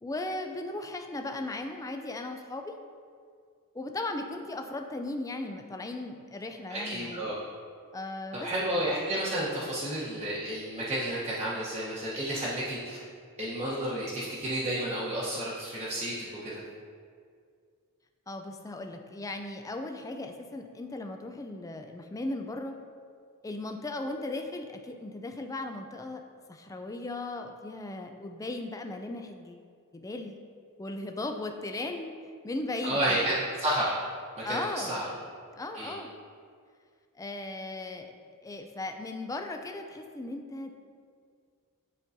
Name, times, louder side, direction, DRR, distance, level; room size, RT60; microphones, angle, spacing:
voice 1, 0.0-2.8 3.7-7.2 7.9-8.5 18.3-22.7 23.4-26.2 26.5-29.6 29.9-30.4 30.8-32.1 32.4-33.3 34.4-35.0 35.6-36.1 37.2-38.1 38.4-40.7, left 2 dB, 15° left, 5 dB, 0.4 m, -37 dB
voice 2, 6.7-7.4 8.3-13.0 13.4-16.1 16.4-16.6 32.8-33.9 34.5-35.0 35.7-35.9, right 1 dB, 30° right, -10 dB, 1.0 m, -31 dB
10.5 x 3.8 x 2.7 m, 2.2 s
head